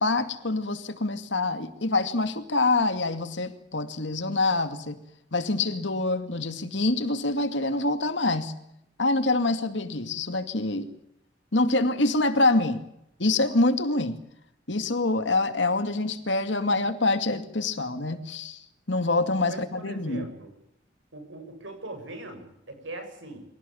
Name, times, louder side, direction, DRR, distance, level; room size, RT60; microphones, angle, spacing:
voice 1, 0.0-5.0 5.3-8.5 9.0-10.9 11.5-12.8 13.2-14.2 14.7-18.6 18.9-20.2, left 2 dB, 70° left, 9 dB, 2.4 m, -25 dB
voice 2, 19.5-20.5 21.1-23.4, right 2 dB, 85° right, 6 dB, 7.7 m, -40 dB
24.5 x 18.0 x 8.7 m, 0.78 s
head